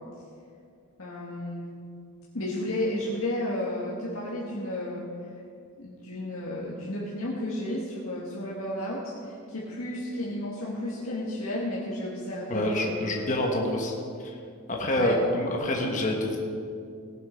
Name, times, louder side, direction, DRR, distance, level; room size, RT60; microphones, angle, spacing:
voice 1, 1.0-1.7 2.3-5.0 5.8-12.9 14.9-15.3, left 1 dB, 70° left, -5 dB, 1.8 m, -32 dB
voice 2, 12.5-13.9 14.2-14.3 14.7-16.4, left 1 dB, 35° left, 0 dB, 1.4 m, -27 dB
17.5 x 7.6 x 5.2 m, 2.4 s
head